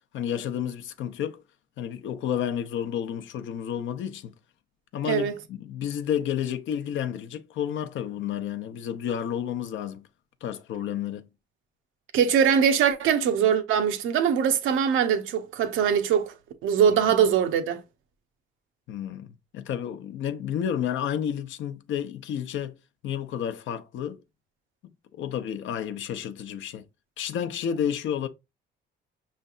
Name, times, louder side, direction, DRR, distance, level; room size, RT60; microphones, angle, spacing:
voice 1, 0.1-1.4 1.8-4.3 4.9-10.1 10.4-11.3 17.1-17.3 18.9-22.7 23.0-24.2 25.1-26.8 27.2-28.3, left 9 dB, 75° left, 0.6 m, -31 dB
voice 2, 12.1-16.3 16.6-17.8, right 8 dB, 85° right, 0.7 m, -22 dB
5.5 x 3.2 x 2.4 m
cardioid pair, 90°, 20 cm